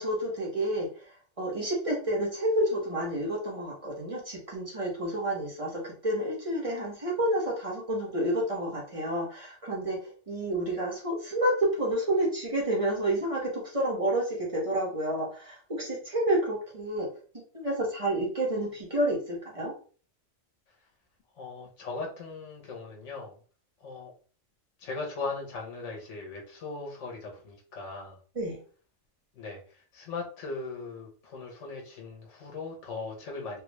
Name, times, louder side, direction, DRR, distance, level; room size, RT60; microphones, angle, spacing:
voice 1, 0.0-17.1 17.5-19.7 28.4-28.6, right 1 dB, 30° right, -2 dB, 1.1 m, -29 dB
voice 2, 21.3-23.4 23.8-24.1 24.8-28.2 29.3-33.6, left 3 dB, 75° left, 0 dB, 1.3 m, -39 dB
3.4 x 2.3 x 3.1 m, 0.40 s
omnidirectional pair, 1.2 m